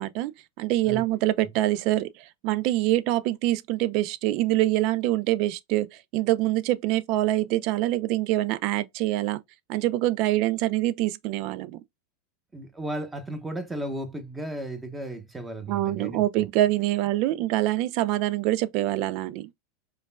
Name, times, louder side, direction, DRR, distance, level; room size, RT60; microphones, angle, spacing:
voice 1, 0.0-5.9 6.1-9.4 9.7-11.8 15.7-19.5, right 15 dB, 55° right, 0.4 m, -25 dB
voice 2, 12.5-16.5, right 1 dB, 10° right, 1.0 m, -35 dB
5.1 x 2.3 x 2.3 m
hypercardioid pair, 105°, 0 cm